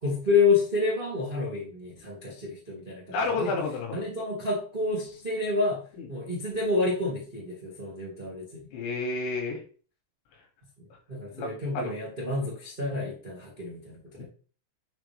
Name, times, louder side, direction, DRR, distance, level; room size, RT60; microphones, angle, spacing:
voice 1, 0.0-3.5 3.9-8.6 11.1-14.2, left 3 dB, 20° right, -5 dB, 1.5 m, -29 dB
voice 2, 3.1-4.0 5.9-6.1 8.7-9.6 11.3-11.9 14.2-14.3, left 3 dB, 75° left, 0 dB, 4.8 m, -31 dB
9.2 x 5.0 x 3.5 m, 0.39 s
omnidirectional pair, 5.3 m